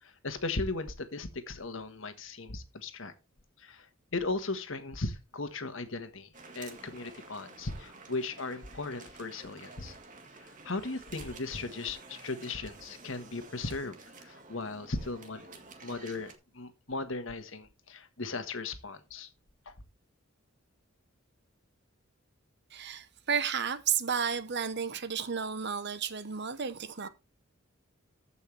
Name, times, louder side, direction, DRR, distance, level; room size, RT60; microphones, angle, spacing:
voice 1, 0.0-3.1 3.6-6.3 6.5-10.0 10.4-19.3 19.6-19.7, left 3 dB, 65° left, 1.5 m, -37 dB
sound 1, 6.3-16.4, right 3 dB, 40° right, 1.7 m, -51 dB
voice 2, 22.7-27.1, right 7 dB, 55° right, 0.9 m, -32 dB
14.5 x 5.6 x 3.3 m
head